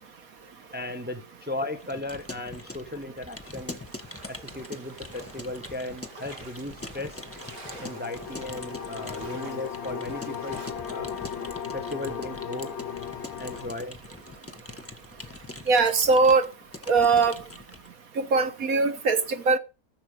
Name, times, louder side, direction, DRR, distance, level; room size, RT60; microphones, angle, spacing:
voice 1, 0.7-3.8 4.3-7.2 7.8-10.6 10.9-11.2 11.7-12.8 13.4-14.0, left 1 dB, 10° right, 0.6 m, -36 dB
Keyboard (musical) / Computer keyboard, 1.8-17.9, left 2 dB, 10° left, 1.1 m, -43 dB
sound 1, 3.4-10.7, right 2 dB, 90° right, 3.6 m, -48 dB
sound 2, 6.8-13.7, left 8 dB, 55° left, 0.8 m, -37 dB
voice 2, 15.7-16.5 16.9-17.4 18.2-19.6, right 4 dB, 60° right, 1.6 m, -21 dB
14.5 x 7.1 x 5.0 m
omnidirectional pair, 1.7 m